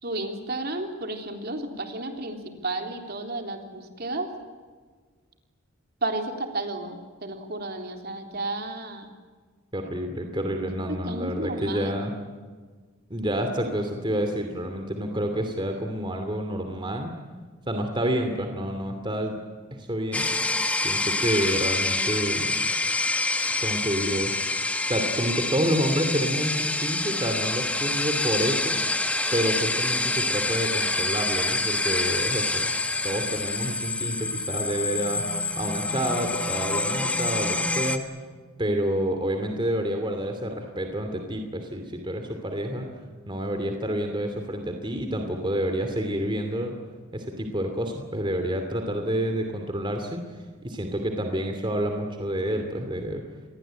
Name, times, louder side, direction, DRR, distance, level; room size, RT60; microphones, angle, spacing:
voice 1, 0.0-4.3 6.0-9.1 10.9-11.9, right 2 dB, 50° right, 4 dB, 3.6 m, -32 dB
voice 2, 9.7-12.1 13.1-17.1 17.7-19.4 19.7-20.3 20.8-22.6 23.6-24.3 24.8-28.8 29.3-32.7 33.0-35.2 35.6-38.0 38.6-42.9 43.3-46.7 47.1-50.2 50.6-53.2, equal, 25° right, 5 dB, 2.6 m, -28 dB
sound 1, 20.1-38.0, left 2 dB, 5° left, 1.6 m, -27 dB
28.0 x 21.5 x 9.0 m, 1.5 s
head